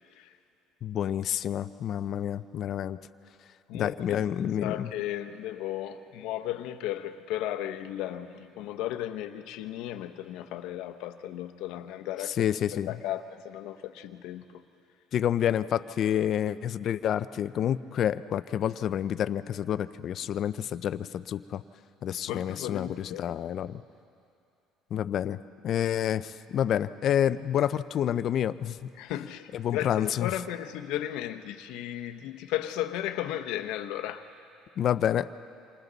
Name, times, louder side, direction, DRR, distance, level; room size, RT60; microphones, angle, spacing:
voice 1, 0.8-3.0 3.7-4.9 12.4-12.9 15.1-21.6 22.0-23.8 24.9-25.4 25.6-28.8 29.5-30.3 34.8-35.3, left 10 dB, 50° left, 14 dB, 0.6 m, -28 dB
voice 2, 3.7-14.6 22.3-23.4 29.0-34.2, left 12 dB, 80° left, 8 dB, 1.0 m, -35 dB
28.0 x 25.5 x 4.1 m, 2.6 s
cardioid pair, 115°, 0 cm